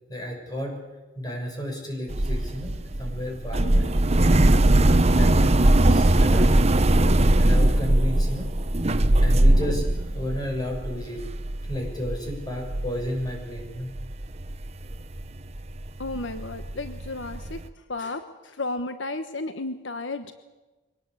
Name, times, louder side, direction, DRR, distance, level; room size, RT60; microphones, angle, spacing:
voice 1, 0.1-0.8 1.1-4.0 5.1-6.7 7.4-8.5 9.2-9.9 10.1-11.2 11.7-13.9, equal, 20° left, 2 dB, 6.6 m, -32 dB
sound 1, 2.1-13.7 14.0-17.7, right 1 dB, 35° right, 1.0 m, -21 dB
voice 2, 16.0-17.6 17.9-20.3, left 2 dB, 70° left, 9 dB, 1.2 m, -33 dB
24.0 x 18.5 x 8.4 m, 1.2 s
head